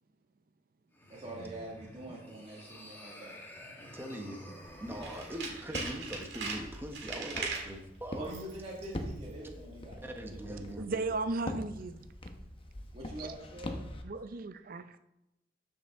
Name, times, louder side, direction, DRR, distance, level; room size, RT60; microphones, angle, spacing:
sound 1, 0.9-5.7, equal, 10° left, 1.4 m, -50 dB
voice 1, 1.1-3.4 8.1-11.1 12.9-13.8, right 1 dB, 35° right, 1.8 m, -45 dB
voice 2, 3.9-4.4 4.8-8.2 10.0-10.9, equal, 10° right, 0.9 m, -42 dB
Walk footsteps, 4.6-14.0, left 1 dB, 30° left, 0.9 m, -44 dB
Tools, 4.9-7.7 8.2-8.6 8.8-8.9, right 4 dB, 70° right, 1.9 m, -39 dB
voice 3, 10.8-12.1 13.2-13.3 14.0-15.0, right 3 dB, 50° right, 0.5 m, -35 dB
13.0 x 5.5 x 3.6 m
head